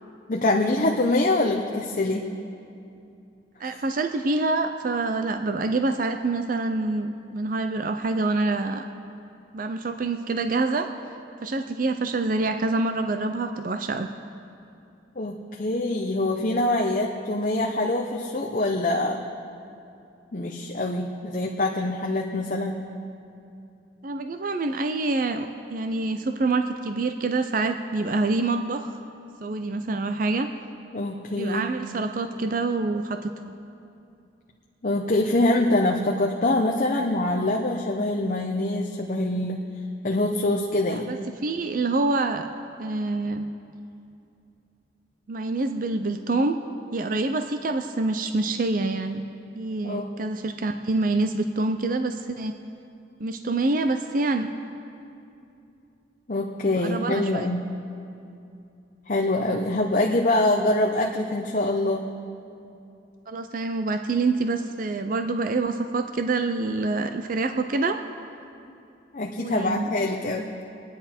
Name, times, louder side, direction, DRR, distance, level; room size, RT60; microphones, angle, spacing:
voice 1, 0.3-2.3 3.6-3.7 15.2-19.2 20.3-22.8 30.9-31.7 34.8-39.6 40.0-41.1 49.8-50.1 56.3-57.6 59.1-62.0 69.1-70.5, left 2 dB, 45° left, 0 dB, 0.8 m, -24 dB
voice 2, 3.6-8.9 9.5-10.9 11.4-14.1 24.0-29.0 29.4-30.5 31.4-33.5 40.9-41.2 41.4-42.5 42.8-43.5 45.3-46.6 46.9-49.2 49.5-52.5 53.2-54.5 56.7-57.5 63.3-68.0 69.4-69.9, right 3 dB, 50° right, 7 dB, 0.5 m, -26 dB
24.0 x 10.0 x 4.4 m, 2.6 s
head